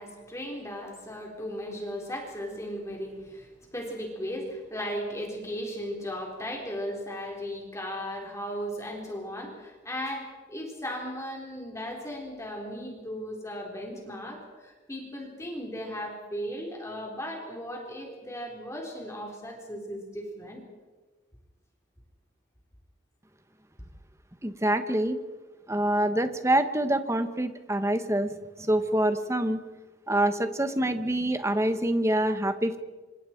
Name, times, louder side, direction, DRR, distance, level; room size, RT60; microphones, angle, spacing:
voice 1, 0.0-20.6, equal, 15° left, 0 dB, 4.0 m, -36 dB
voice 2, 24.4-25.2 25.7-29.6 30.1-32.8, right 1 dB, 15° right, 9 dB, 1.2 m, -26 dB
27.0 x 25.5 x 4.6 m, 1.3 s
head